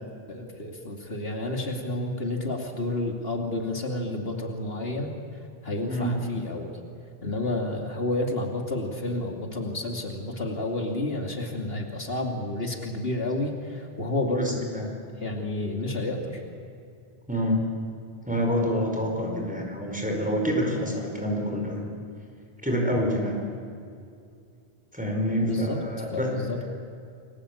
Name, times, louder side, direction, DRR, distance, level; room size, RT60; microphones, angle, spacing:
voice 1, 0.3-5.1 5.6-6.7 7.2-14.6 15.2-16.4 25.4-25.8 26.1-26.7, left 2 dB, 70° left, 2 dB, 3.0 m, -30 dB
voice 2, 14.3-14.9 17.3-17.6 18.2-21.9 22.6-23.4 24.9-26.3, equal, 5° right, 0 dB, 5.1 m, -27 dB
29.5 x 22.0 x 8.6 m, 2.4 s
omnidirectional pair, 1.0 m